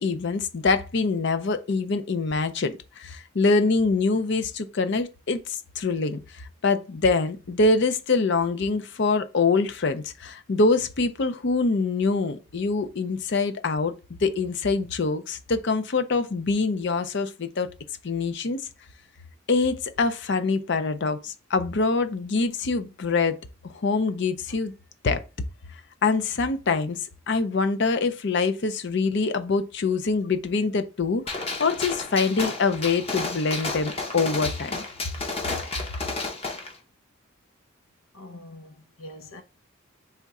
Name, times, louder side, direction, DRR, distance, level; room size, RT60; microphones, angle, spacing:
voice 1, 0.0-13.9 14.2-17.7 18.0-18.6 19.5-23.4 23.6-24.7 25.0-25.2 26.0-34.8, left 3 dB, 55° left, 0.5 m, -25 dB
Gunshot gunfire, 31.3-36.7, left 3 dB, 30° left, 0.8 m, -32 dB
voice 2, 38.1-39.4, left 1 dB, 90° left, 0.8 m, -44 dB
3.6 x 3.5 x 4.1 m
head